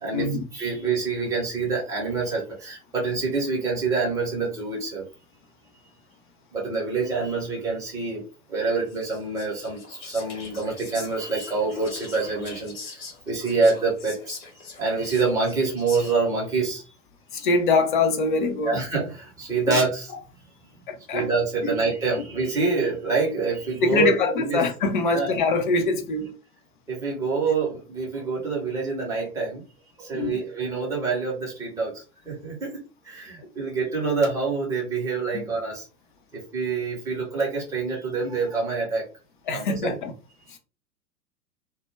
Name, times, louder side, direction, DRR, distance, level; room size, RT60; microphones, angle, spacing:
voice 1, 0.0-5.0 6.5-8.2 8.5-14.4 14.8-16.9 18.6-20.1 21.1-24.6 25.1-25.3 26.9-29.6 30.0-35.8 36.3-39.1 39.5-39.9, right 4 dB, 10° right, 0.6 m, -26 dB
Whispering, 8.9-16.4, left 4 dB, 50° left, 1.1 m, -42 dB
voice 2, 17.3-18.8 19.7-19.8 20.9-21.3 21.6-21.7 23.8-26.3 30.1-30.4 35.3-35.4 39.5-40.1 40.5-40.6, left 3 dB, 35° left, 0.5 m, -23 dB
2.2 x 2.1 x 3.1 m
figure-of-eight pair, 105°, 45 cm